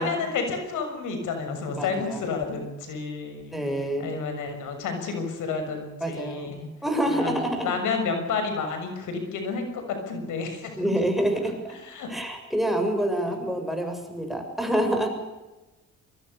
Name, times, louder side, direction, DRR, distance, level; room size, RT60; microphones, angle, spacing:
voice 1, 0.0-3.6 4.0-6.7 7.1-11.0 11.7-12.1, left 4 dB, 85° left, 6 dB, 6.7 m, -30 dB
voice 2, 1.8-2.2 3.5-4.1 6.0-6.5 6.8-7.7 10.8-11.6 12.1-15.1, right 1 dB, ahead, 3 dB, 7.4 m, -27 dB
24.0 x 22.5 x 6.9 m, 1.1 s
cardioid pair, 90°, 30 cm